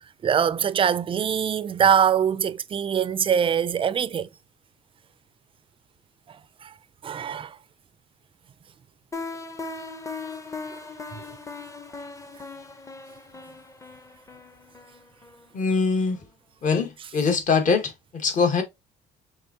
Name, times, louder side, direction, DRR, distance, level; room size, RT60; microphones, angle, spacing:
voice 1, 0.0-4.3 6.6-6.7 7.0-7.6, right 8 dB, 30° right, 0.4 m, -23 dB
sound 1, 9.1-15.9, left 3 dB, 20° left, 0.8 m, -39 dB
voice 2, 15.5-16.2 16.6-18.6, left 5 dB, 50° left, 1.6 m, -23 dB
5.4 x 3.5 x 2.8 m
cardioid pair, 110°, 17 cm